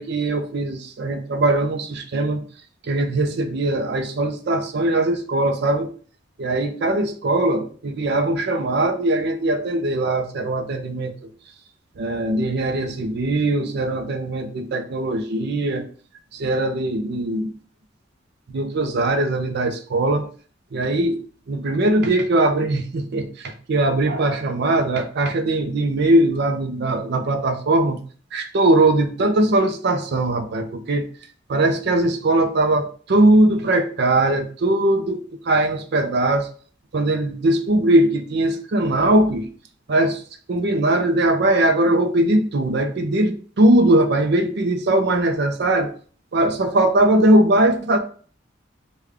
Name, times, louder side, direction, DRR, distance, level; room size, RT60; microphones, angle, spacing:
voice 1, 0.0-2.4 2.8-5.9 6.4-11.3 12.0-15.8 16.3-17.5 18.5-20.3 20.7-28.0 28.3-31.1 31.5-36.5 36.9-39.5 39.9-40.2 40.5-45.9 46.3-48.0, right 1 dB, 60° right, 6 dB, 0.5 m, -20 dB
3.4 x 2.2 x 3.4 m, 0.42 s
head